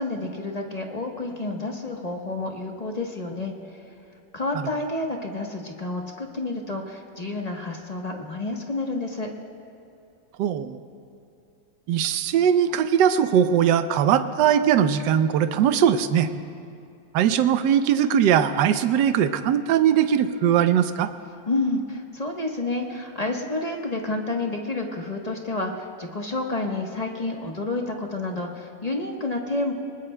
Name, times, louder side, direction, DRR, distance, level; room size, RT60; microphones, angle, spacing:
voice 1, 0.0-3.8 4.3-9.3 21.5-29.7, left 2 dB, 30° left, 1 dB, 0.9 m, -29 dB
voice 2, 10.4-10.8 11.9-16.3 17.1-21.1, right 9 dB, 75° right, 10 dB, 1.3 m, -20 dB
25.0 x 20.0 x 2.2 m, 2.5 s
omnidirectional pair, 2.0 m